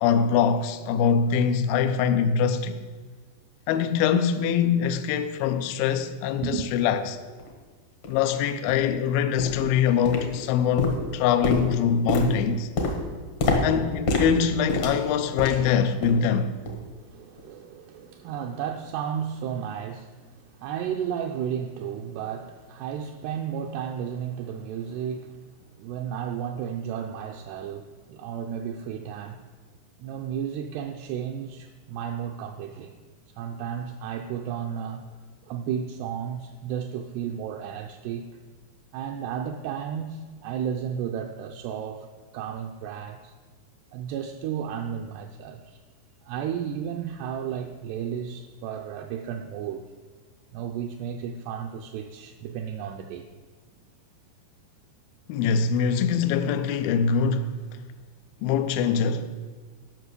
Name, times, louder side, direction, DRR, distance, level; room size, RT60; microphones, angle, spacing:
voice 1, 0.0-2.8 3.7-7.2 8.1-12.7 13.6-16.5 55.3-57.6 58.4-59.3, left 7 dB, 90° left, 2.1 m, -23 dB
voice 2, 6.4-6.7 16.9-20.3 20.6-25.4 25.8-29.4 30.0-32.9 33.4-35.1 35.5-38.3 38.9-42.1 42.3-43.3 43.9-45.8 46.3-49.9 50.5-53.3, right 8 dB, 80° right, 2.5 m, -33 dB
sound 1, 7.4-7.5 8.0-8.2 8.7-8.8 9.4-9.7 10.0-10.5 10.8-15.7 16.0-16.3 16.7-16.8 17.4-17.5, left 2 dB, 70° left, 1.4 m, -28 dB
12.0 x 6.0 x 6.7 m
omnidirectional pair, 5.0 m